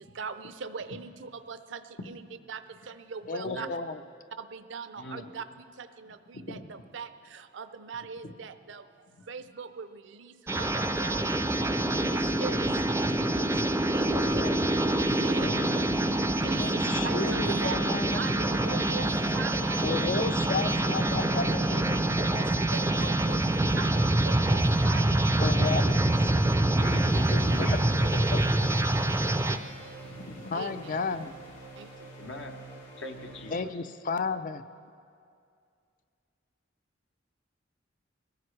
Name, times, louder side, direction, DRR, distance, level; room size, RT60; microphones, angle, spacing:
voice 1, 0.0-2.2 2.5-3.7 4.4-13.6 13.9-14.4 15.0-15.5 16.4-17.2 17.4-17.8 18.1-20.3 21.2-21.3 21.6-21.7 22.4-25.4 28.4-29.1 30.5-31.0 31.8-32.1, right 5 dB, 65° right, 10 dB, 0.5 m, -41 dB
voice 2, 3.3-4.0 16.6-18.2 19.8-22.5 25.4-26.0 26.3-26.6 28.1-28.5 30.4-31.3 33.5-34.6, left 4 dB, 45° left, 11 dB, 0.5 m, -33 dB
voice 3, 5.0-5.3 6.3-6.6 8.2-8.3 14.0-14.6 15.4-15.8 21.7-21.8 25.3-25.9 26.8-27.9 30.0-31.2 32.2-32.6 33.0-33.9, left 2 dB, 65° left, 3 dB, 1.0 m, -40 dB
sound 1, 10.5-29.6, right 1 dB, 15° right, 0.5 m, -26 dB
sound 2, 26.7-33.6, right 2 dB, 85° left, 2.9 m, -47 dB
22.0 x 14.5 x 3.2 m, 2.4 s
head